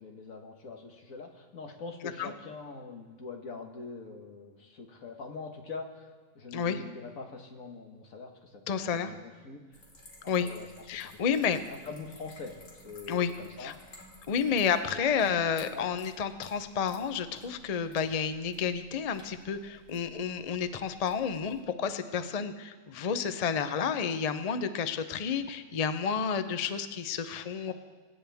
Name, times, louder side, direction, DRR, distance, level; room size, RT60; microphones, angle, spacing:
voice 1, 0.0-6.1 6.4-9.8 10.4-14.0 14.9-15.1 15.7-15.9 27.7-27.8, left 4 dB, 80° left, 3 dB, 1.8 m, -44 dB
voice 2, 8.7-9.1 10.3-10.5 10.9-11.6 13.1-13.3 13.6-13.7 14.3-27.7, left 7 dB, 45° left, 10 dB, 0.5 m, -30 dB
sound 1, 9.7-21.6, equal, 60° left, 2.5 m, -55 dB
24.0 x 9.8 x 3.5 m, 1.4 s
omnidirectional pair, 1.4 m